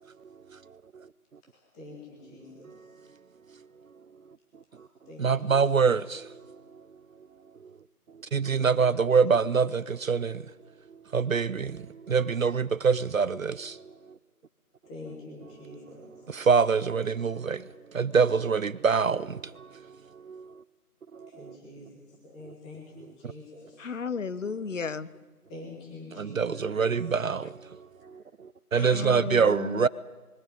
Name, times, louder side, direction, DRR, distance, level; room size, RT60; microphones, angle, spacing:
voice 1, 1.4-2.9 4.7-6.0 8.5-9.8 14.8-16.3 21.3-23.9 25.5-26.8, left 2 dB, 5° left, 1.2 m, -47 dB
voice 2, 5.2-6.0 8.3-9.8 10.1-10.3 11.1-11.7 12.1-13.5 16.5-17.6 18.0-19.2 26.4-27.4 28.7-29.9, right 5 dB, 60° right, 0.6 m, -23 dB
voice 3, 23.8-25.1 28.8-29.9, left 5 dB, 55° left, 0.9 m, -34 dB
21.0 x 16.0 x 8.8 m
figure-of-eight pair, 160°, 46 cm